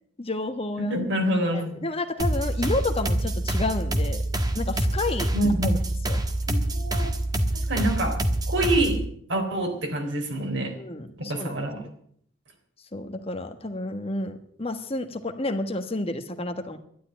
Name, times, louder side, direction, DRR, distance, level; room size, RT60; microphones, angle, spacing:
voice 1, 0.2-0.9 1.5-4.2 4.5-5.3 5.6-5.8 6.1-6.2 10.8-11.6 12.9-16.8, left 2 dB, 30° left, 7 dB, 1.3 m, -30 dB
voice 2, 0.8-1.9 5.3-5.8 6.5-7.1 7.7-8.2 8.5-9.0 9.3-10.7 11.2-11.8, right 1 dB, 70° right, 3 dB, 3.8 m, -26 dB
sound 1, 2.2-9.1, right 1 dB, 20° right, 1.4 m, -26 dB
12.5 x 11.0 x 9.0 m, 0.64 s
head